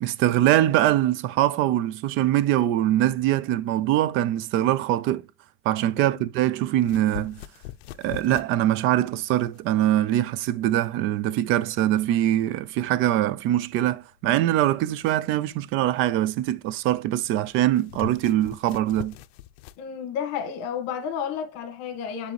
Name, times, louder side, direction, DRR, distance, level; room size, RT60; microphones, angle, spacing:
voice 1, 0.0-5.2 5.7-7.4 8.0-19.1, right 13 dB, 40° right, 0.4 m, -23 dB
sound 1, 6.8-19.8, left 14 dB, 80° left, 0.6 m, -44 dB
voice 2, 19.8-22.3, left 7 dB, 55° left, 1.6 m, -31 dB
8.2 x 4.0 x 3.1 m
supercardioid pair, 140°, 31 cm